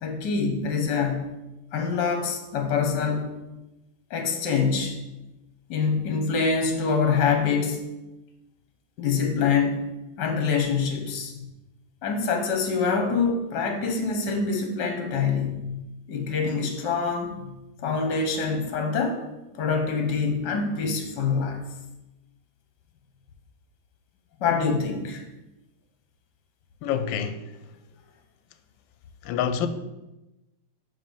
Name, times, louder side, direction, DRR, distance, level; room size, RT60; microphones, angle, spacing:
voice 1, 0.0-1.3 1.7-3.3 4.1-5.0 5.7-7.8 9.0-9.8 10.2-11.3 12.0-17.3 17.8-19.2 19.5-21.6 24.4-25.2, left 5 dB, 65° left, 1.6 m, -25 dB
voice 2, 26.8-27.5 29.2-29.7, left 8 dB, 85° left, 1.3 m, -26 dB
5.6 x 5.5 x 5.2 m
omnidirectional pair, 2.0 m